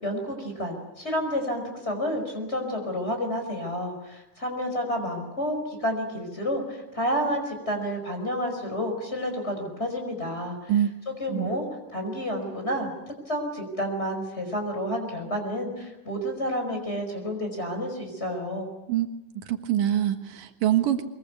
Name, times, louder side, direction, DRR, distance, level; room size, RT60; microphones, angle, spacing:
voice 1, 0.0-10.7 11.1-11.6 11.9-12.9 13.3-18.7, equal, 20° left, 4 dB, 5.3 m, -30 dB
voice 2, 19.4-21.0, right 11 dB, 85° right, 6 dB, 3.1 m, -24 dB
23.5 x 22.0 x 8.2 m, 0.96 s
omnidirectional pair, 3.7 m